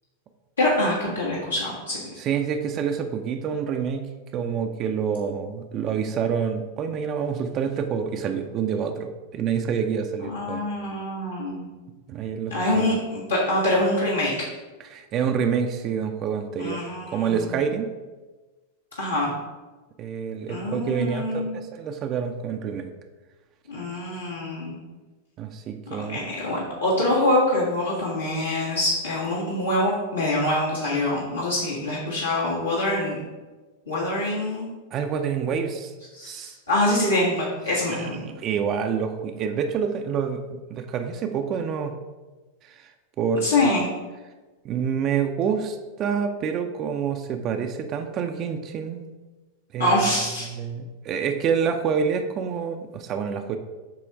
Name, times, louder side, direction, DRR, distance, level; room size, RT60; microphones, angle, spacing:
voice 1, 0.6-2.1 10.3-11.7 12.5-14.3 16.6-17.5 19.0-19.3 20.5-21.5 23.7-24.8 25.9-33.2 33.9-34.7 36.1-38.2 43.4-43.9 49.8-50.5, left 1 dB, 75° left, -7 dB, 1.5 m, -25 dB
voice 2, 2.2-4.1 4.3-10.7 12.1-12.9 14.9-16.8 17.1-17.9 20.0-22.9 25.4-26.2 34.9-35.9 36.2-36.5 37.9-41.9 42.7-42.8 43.2-43.7 44.6-49.1 49.7-50.0 50.5-53.6, right 7 dB, 35° right, 6 dB, 0.5 m, -27 dB
7.6 x 3.1 x 5.1 m, 1.2 s
figure-of-eight pair, 90°, 0 cm